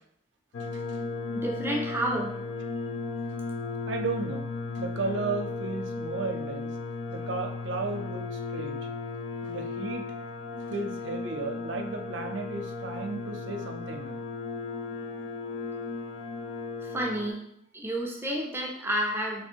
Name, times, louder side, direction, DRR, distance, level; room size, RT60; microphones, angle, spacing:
sound 1, 0.5-17.3, left 3 dB, 65° left, 0.5 m, -35 dB
voice 1, 1.3-2.4 16.8-17.5 17.7-19.5, right 1 dB, 10° right, 0 dB, 0.5 m, -30 dB
voice 2, 3.9-4.4 4.7-6.7 7.1-8.9 9.4-10.0 10.7-14.1, right 3 dB, 65° right, 4 dB, 0.6 m, -34 dB
3.3 x 3.3 x 4.4 m, 0.76 s
head